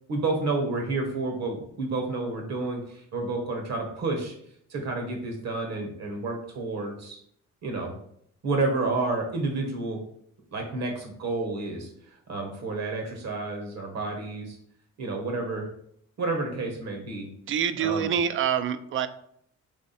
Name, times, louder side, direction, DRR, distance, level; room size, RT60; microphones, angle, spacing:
voice 1, 0.1-4.3 4.7-7.2 7.6-7.9 8.4-10.0 10.5-14.6 15.0-15.7 16.2-17.3 17.8-18.1, right 3 dB, 60° right, 2 dB, 1.3 m, -30 dB
voice 2, 17.5-19.1, right 8 dB, 45° right, 12 dB, 0.4 m, -26 dB
3.5 x 3.2 x 4.2 m, 0.68 s
cardioid pair, 90°, 30 cm